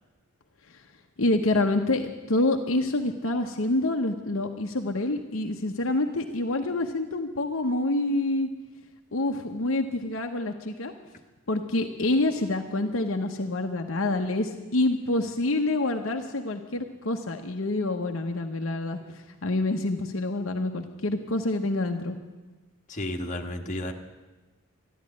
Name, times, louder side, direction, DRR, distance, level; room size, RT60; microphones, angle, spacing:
voice 1, 1.2-8.5 9.1-10.9 11.5-22.2, left 2 dB, 65° left, 4 dB, 0.9 m, -27 dB
voice 2, 22.9-23.9, left 1 dB, 35° left, 2 dB, 1.5 m, -32 dB
13.5 x 11.0 x 9.6 m, 1.2 s
head